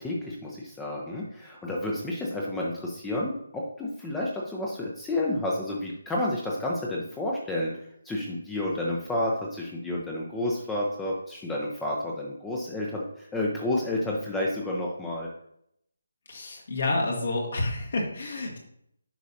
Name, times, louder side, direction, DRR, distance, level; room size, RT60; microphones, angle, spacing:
voice 1, 0.0-15.3, left 1 dB, 5° left, -3 dB, 0.7 m, -30 dB
voice 2, 16.3-18.6, left 2 dB, 50° left, -1 dB, 1.6 m, -29 dB
10.0 x 5.2 x 2.7 m, 0.72 s
figure-of-eight pair, 150°, 0 cm